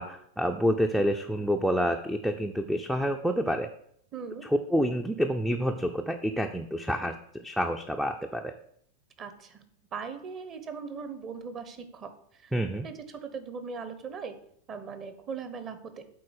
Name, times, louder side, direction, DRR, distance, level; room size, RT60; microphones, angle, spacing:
voice 1, 0.0-3.7 4.5-7.1 7.4-8.5 12.5-12.9, equal, ahead, 6 dB, 0.5 m, -28 dB
voice 2, 4.1-4.5 9.2-9.6 9.9-12.5 12.8-14.3 14.7-16.0, right 5 dB, 30° right, 10 dB, 1.1 m, -39 dB
8.4 x 4.1 x 6.6 m, 0.67 s
figure-of-eight pair, 90°, 0 cm